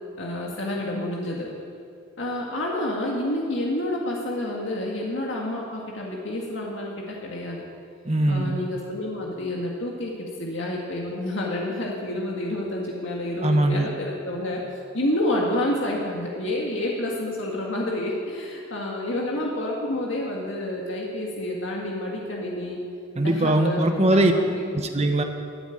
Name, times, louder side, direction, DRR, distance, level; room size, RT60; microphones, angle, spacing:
voice 1, 0.2-1.5 2.2-7.6 8.3-14.6 14.9-22.8 23.2-24.8, left 1 dB, 65° left, -2 dB, 1.9 m, -29 dB
voice 2, 8.0-8.6 13.4-13.9 23.2-24.3 24.7-25.2, right 1 dB, 30° right, 5 dB, 1.1 m, -21 dB
13.0 x 9.9 x 9.1 m, 2.4 s
head